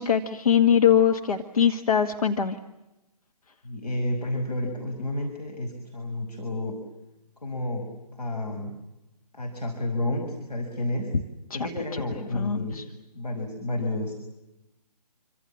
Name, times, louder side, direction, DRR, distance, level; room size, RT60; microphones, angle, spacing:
voice 1, 0.0-2.6 11.5-12.0 12.3-12.8, left 8 dB, 60° left, 5 dB, 1.8 m, -22 dB
voice 2, 3.6-6.8 7.4-7.9 8.2-8.7 9.3-11.1 11.5-14.1, left 1 dB, 75° left, 2 dB, 6.0 m, -31 dB
28.0 x 25.5 x 7.4 m, 0.96 s
figure-of-eight pair, 140°, 21 cm